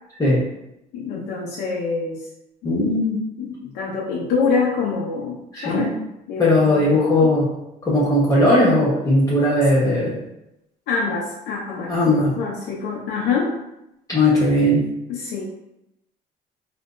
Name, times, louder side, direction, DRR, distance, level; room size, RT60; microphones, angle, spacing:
voice 1, 0.9-2.2 2.7-2.9 3.4-5.9 6.3-6.9 7.2-7.3 10.9-13.6 15.1-15.4, left 5 dB, 85° left, -3 dB, 0.7 m, -25 dB
voice 2, 2.6-3.2 5.5-5.9 6.4-7.5 7.8-10.2 11.9-12.4 14.1-14.8, left 1 dB, 20° left, -8 dB, 1.2 m, -18 dB
3.6 x 2.8 x 2.5 m, 0.86 s
cardioid pair, 110°, 17 cm